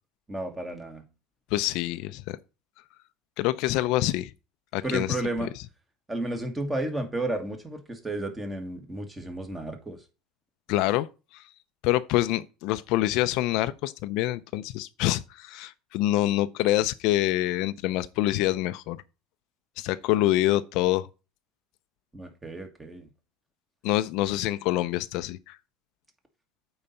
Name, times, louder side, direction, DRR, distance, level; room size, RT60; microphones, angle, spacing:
voice 1, 0.3-1.0 4.8-5.5 6.1-10.0 22.1-23.1, right 2 dB, 15° right, 1.7 m, -32 dB
voice 2, 1.5-2.4 3.4-4.3 4.7-5.5 10.7-11.1 11.8-19.0 19.8-21.1 23.8-25.6, left 16 dB, 65° left, 0.5 m, -26 dB
8.7 x 4.0 x 5.7 m
supercardioid pair, 125°, 0 cm